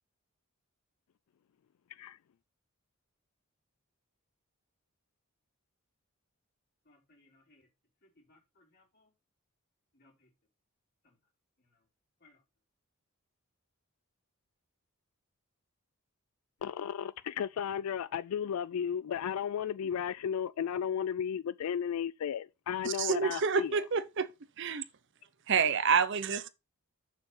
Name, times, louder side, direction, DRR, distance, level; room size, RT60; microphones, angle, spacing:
voice 1, 6.9-7.7 8.0-9.1 9.9-10.3 11.0-11.2 11.6-11.8 12.2-12.4, left 2 dB, 45° left, 3.6 m, -66 dB
voice 2, 16.6-23.7, left 8 dB, 80° left, 0.3 m, -34 dB
voice 3, 22.8-24.3 24.6-24.8 25.5-26.5, right 6 dB, 55° right, 0.8 m, -28 dB
6.9 x 5.8 x 5.6 m
head